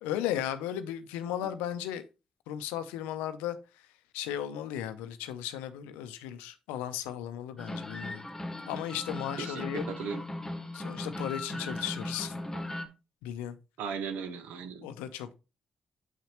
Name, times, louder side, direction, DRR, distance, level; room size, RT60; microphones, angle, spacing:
voice 1, 0.0-2.0 2.5-3.6 4.1-8.3 8.7-9.8 10.7-12.4 13.2-13.6 14.8-15.3, left 11 dB, 90° left, 0.6 m, -35 dB
sound 1, 7.6-12.9, left 1 dB, 15° left, 1.6 m, -38 dB
voice 2, 9.4-10.2 12.5-12.6 13.8-14.9, right 6 dB, 80° right, 0.9 m, -37 dB
7.4 x 5.9 x 2.9 m
hypercardioid pair, 45°, 3 cm